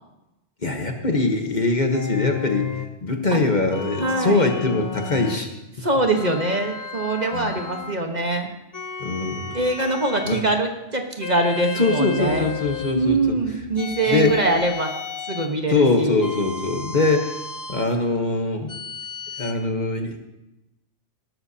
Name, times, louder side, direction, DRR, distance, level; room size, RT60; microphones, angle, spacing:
voice 1, 0.6-2.7 3.0-5.5 7.3-7.5 9.0-9.6 10.2-10.4 11.7-13.3 14.1-14.4 15.7-17.4 17.7-18.7 19.4-20.2, left 3 dB, 40° left, 4 dB, 1.3 m, -22 dB
sound 1, 1.9-2.9 3.7-5.5 6.1-8.0 8.7-10.5 11.2-13.0 13.8-15.6 16.2-17.9 18.7-19.5, left 5 dB, 25° left, 0.5 m, -33 dB
voice 2, 4.0-4.5 5.8-8.5 9.5-12.5 12.9-14.9 15.3-16.2, right 2 dB, 40° right, 3 dB, 1.3 m, -23 dB
18.5 x 12.5 x 2.8 m, 0.94 s
omnidirectional pair, 1.2 m